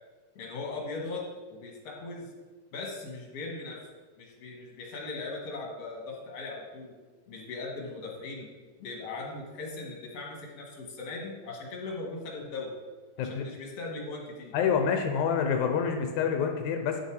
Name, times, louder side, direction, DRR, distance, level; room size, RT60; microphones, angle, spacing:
voice 1, 0.4-1.2 1.5-2.3 2.7-3.8 4.2-6.9 7.3-8.5 8.8-12.7 13.2-14.5, left 3 dB, 60° left, 0 dB, 2.7 m, -39 dB
voice 2, 14.5-17.0, left 7 dB, 90° left, 4 dB, 2.2 m, -27 dB
9.3 x 6.8 x 4.8 m, 1.4 s
omnidirectional pair, 3.3 m